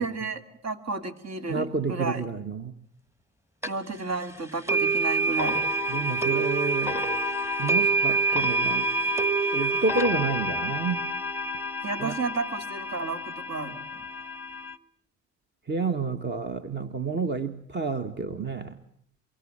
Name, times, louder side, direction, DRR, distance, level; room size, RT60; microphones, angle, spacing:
voice 1, 0.0-2.3 3.7-5.6 11.8-13.8, right 3 dB, 60° right, 7 dB, 3.0 m, -32 dB
voice 2, 1.5-2.7 5.9-7.1 7.6-8.9 9.5-11.0 12.0-12.2 15.7-18.8, right 4 dB, 35° right, 8 dB, 1.6 m, -30 dB
sound 1, 3.6-3.7 4.7-14.7, right 2 dB, 10° right, 1.6 m, -27 dB
24.0 x 23.5 x 8.7 m, 0.65 s
cardioid pair, 90°, 30 cm